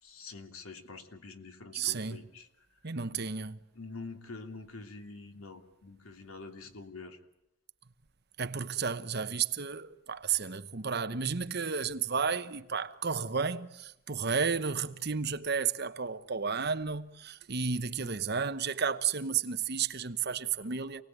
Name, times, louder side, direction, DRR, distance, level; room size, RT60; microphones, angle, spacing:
voice 1, 0.0-2.9 3.7-7.2 18.0-18.1, left 3 dB, 90° left, 2.9 m, -46 dB
voice 2, 1.7-2.2 2.8-3.6 8.4-21.0, right 6 dB, 50° right, 1.0 m, -32 dB
28.5 x 19.0 x 9.4 m
head